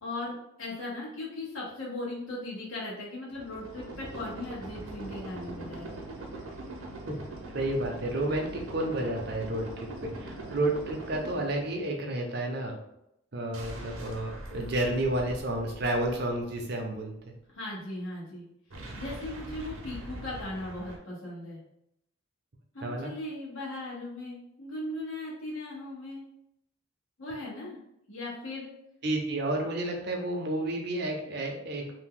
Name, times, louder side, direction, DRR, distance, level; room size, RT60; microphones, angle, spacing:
voice 1, 0.0-6.0 17.5-18.5 18.9-21.6 22.7-26.2 27.2-27.8 28.1-28.7, left 2 dB, 75° left, -5 dB, 1.1 m, -38 dB
sound 1, 3.3-12.1 13.5-16.9 18.7-21.0, right 1 dB, 85° right, 0.7 m, -42 dB
voice 2, 7.5-12.8 13.3-17.3 22.8-23.1 29.0-32.0, right 1 dB, 50° right, 1 dB, 0.6 m, -31 dB
2.7 x 2.2 x 3.7 m, 0.79 s
head